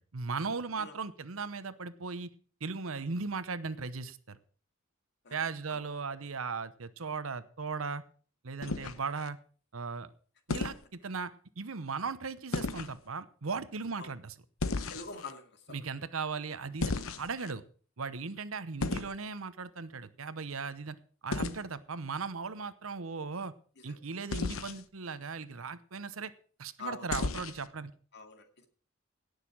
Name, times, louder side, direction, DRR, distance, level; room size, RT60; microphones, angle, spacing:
voice 1, 0.0-2.3 2.6-4.4 5.3-8.0 8.4-9.4 9.7-10.1 10.5-14.3 15.7-17.6 18.0-21.0 21.2-23.5 23.8-26.3 26.6-27.9, right 4 dB, 90° right, 13 dB, 0.9 m, -37 dB
sound 1, 8.6-9.3 10.5-10.8 12.5-12.9 14.6-15.3 16.8-17.5 18.8-19.2 21.3-21.6 24.3-24.8 27.1-27.7, left 3 dB, 85° left, 1.0 m, -34 dB
voice 2, 14.9-15.8 23.9-24.0 26.8-27.2 28.1-28.7, left 3 dB, 55° left, 6 dB, 2.2 m, -45 dB
17.5 x 6.6 x 6.3 m, 0.42 s
head